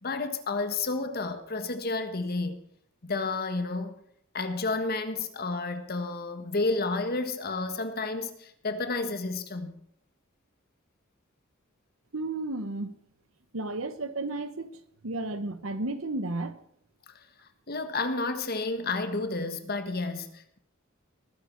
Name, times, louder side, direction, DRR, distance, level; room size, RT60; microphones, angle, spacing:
voice 1, 0.0-2.6 3.0-3.9 4.3-9.8 17.7-20.6, left 3 dB, 50° left, 1.5 m, -31 dB
voice 2, 12.1-12.9 13.5-14.7 15.0-16.6, right 2 dB, 85° right, 1.2 m, -33 dB
20.0 x 9.6 x 4.6 m
head